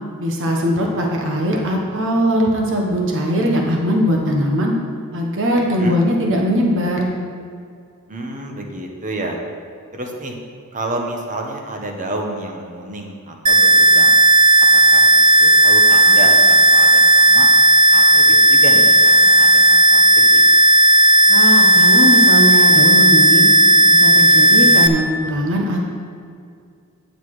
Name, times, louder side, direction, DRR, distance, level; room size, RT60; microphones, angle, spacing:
voice 1, 0.2-4.7 5.1-7.1 21.3-23.5 23.9-25.8, equal, 60° right, 0 dB, 1.2 m, -20 dB
voice 2, 5.7-6.0 8.1-9.4 9.9-10.4 10.7-14.2 14.7-17.5 17.9-20.4, right 1 dB, 35° right, 2 dB, 1.1 m, -30 dB
sound 1, 13.5-24.9, right 1 dB, 20° right, 0.5 m, -12 dB
9.7 x 6.6 x 4.9 m, 2.2 s
head